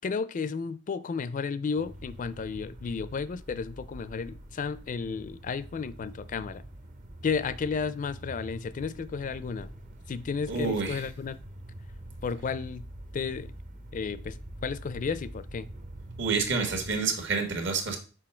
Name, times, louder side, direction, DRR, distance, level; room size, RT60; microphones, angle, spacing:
voice 1, 0.0-6.6 7.2-9.7 10.1-11.4 12.2-12.9 13.1-13.5 13.9-15.7, left 5 dB, 40° left, 0.4 m, -33 dB
sound 1, 1.8-17.0, right 1 dB, 40° right, 0.7 m, -45 dB
voice 2, 10.5-11.0 16.2-18.0, right 4 dB, 60° right, 1.5 m, -28 dB
6.2 x 4.9 x 4.3 m
head